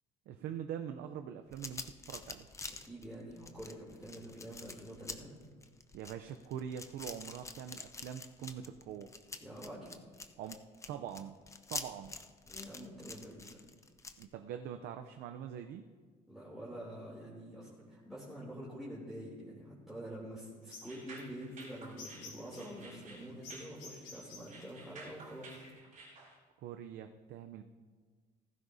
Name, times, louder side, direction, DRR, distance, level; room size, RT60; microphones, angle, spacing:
voice 1, 0.3-2.5 5.9-9.1 10.4-10.6 10.9-11.4 11.7-12.2 14.2-15.9 26.6-27.6, right 9 dB, 80° right, 6 dB, 0.6 m, -43 dB
sound 1, 1.5-14.2, left 3 dB, 15° left, 0.6 m, -46 dB
voice 2, 2.8-5.3 9.4-9.9 12.5-13.6 16.3-25.6, equal, ahead, -7 dB, 2.9 m, -47 dB
sound 2, 20.6-25.7, left 4 dB, 80° left, 4.2 m, -52 dB
sound 3, 20.8-26.4, right 3 dB, 50° right, 3.3 m, -53 dB
16.0 x 14.5 x 2.7 m, 1.5 s
cardioid pair, 110°, 17 cm